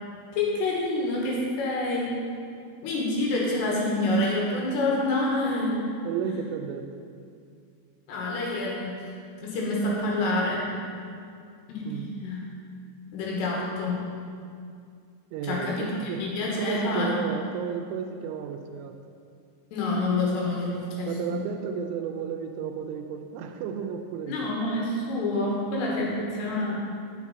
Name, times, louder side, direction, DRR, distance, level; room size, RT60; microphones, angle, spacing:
voice 1, 0.3-2.1 2.8-5.9 8.1-9.0 9.4-10.7 11.7-12.4 13.1-14.0 15.4-17.2 19.7-21.4 24.3-26.8, left 2 dB, 70° left, -4 dB, 3.3 m, -27 dB
voice 2, 6.0-6.9 11.8-12.1 15.3-16.2 16.6-18.9 21.1-24.5, right 7 dB, 85° right, 6 dB, 2.9 m, -33 dB
9.6 x 7.2 x 4.1 m, 2.3 s
omnidirectional pair, 5.6 m